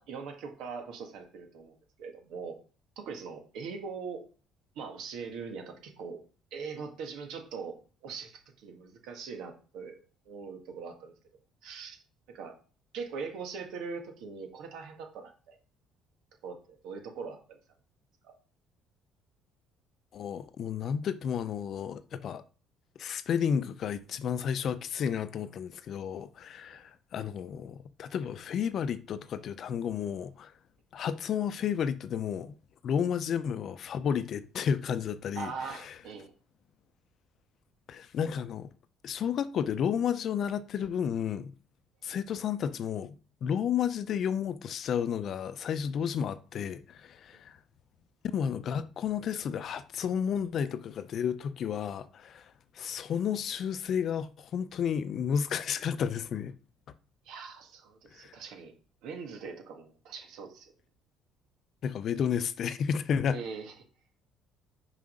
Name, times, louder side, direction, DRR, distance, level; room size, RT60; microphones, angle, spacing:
voice 1, 0.0-2.6 3.0-4.3 4.8-6.2 6.5-7.8 8.0-11.1 11.6-12.0 12.3-12.6 12.9-15.6 16.4-17.6 18.2-18.3 26.7-26.8 35.3-36.3 57.3-58.7 59.0-60.7 63.3-63.7, right 5 dB, 75° right, 1.8 m, -41 dB
voice 2, 20.1-22.4 23.0-30.5 30.9-32.6 32.8-35.9 37.9-38.7 39.0-41.5 42.0-47.6 48.3-56.5 58.1-58.3 61.8-63.4, left 8 dB, 55° left, 0.6 m, -32 dB
5.7 x 5.0 x 5.0 m
supercardioid pair, 75°, 0 cm